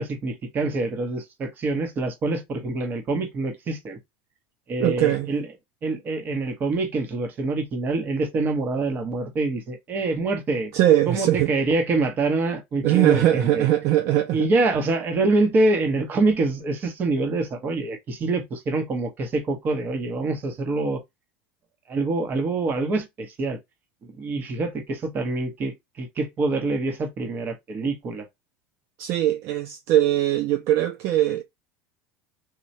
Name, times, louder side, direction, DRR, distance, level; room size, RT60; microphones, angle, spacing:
voice 1, 0.0-4.0 4.7-5.5 5.8-10.7 11.1-13.7 14.3-21.0 21.9-23.6 24.0-28.3, right 2 dB, 35° right, 0.9 m, -25 dB
voice 2, 4.8-5.3 10.7-11.5 12.8-14.5 29.0-31.4, right 13 dB, 60° right, 0.4 m, -21 dB
3.2 x 2.3 x 2.6 m
supercardioid pair, 125°, 6 cm